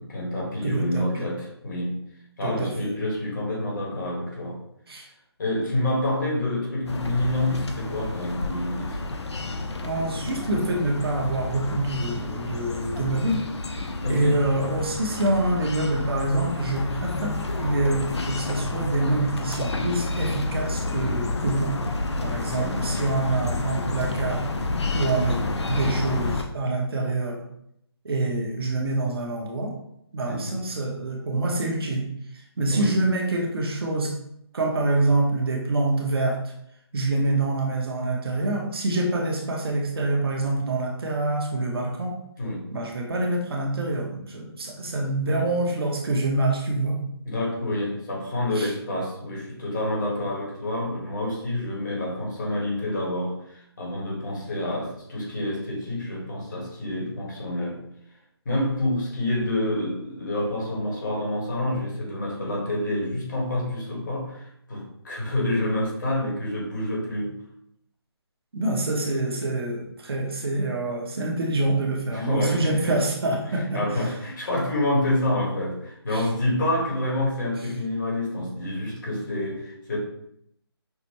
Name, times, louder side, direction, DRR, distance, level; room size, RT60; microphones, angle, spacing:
voice 1, 0.0-2.0 2.4-4.6 5.4-9.0 14.0-14.4 22.5-22.9 30.3-30.6 32.7-32.9 42.4-42.7 45.2-45.5 47.2-57.8 58.4-67.4 72.1-73.0 73.5-80.0, left 1 dB, 45° left, -2 dB, 1.5 m, -28 dB
voice 2, 0.6-1.3 2.4-2.9 4.9-5.1 9.8-13.4 14.1-21.7 22.2-24.4 24.9-25.4 25.7-27.4 28.0-29.7 30.1-32.1 32.6-34.1 34.5-36.4 36.9-42.2 42.7-47.0 48.5-48.7 68.5-73.8 76.1-76.3, right 2 dB, 65° right, 1 dB, 1.0 m, -26 dB
sound 1, 6.9-26.4, left 2 dB, 85° left, 0.6 m, -30 dB
5.8 x 2.2 x 2.9 m, 0.74 s
hypercardioid pair, 165°, 14 cm